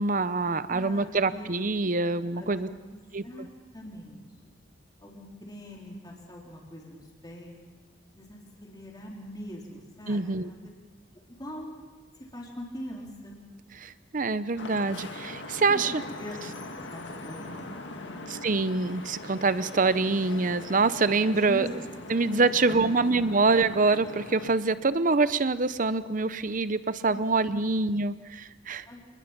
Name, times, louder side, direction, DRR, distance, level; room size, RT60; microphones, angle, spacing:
voice 1, 0.0-2.7 3.1-3.5 10.1-10.5 13.8-16.0 18.4-21.7 22.1-28.8, right 3 dB, 45° right, 14 dB, 0.7 m, -25 dB
voice 2, 0.6-1.6 2.3-3.5 3.7-4.5 5.0-7.6 8.2-10.7 11.1-11.7 12.3-13.4 15.7-18.2 21.2-21.7 22.3-22.9 27.1-27.2 27.5-27.6 28.9-29.0, equal, 20° left, -2 dB, 3.9 m, -43 dB
Vehicle horn car horn honking / Traffic noise roadway noise, 14.6-24.5, left 2 dB, 70° left, 1.9 m, -41 dB
27.0 x 21.5 x 5.9 m, 1.4 s
head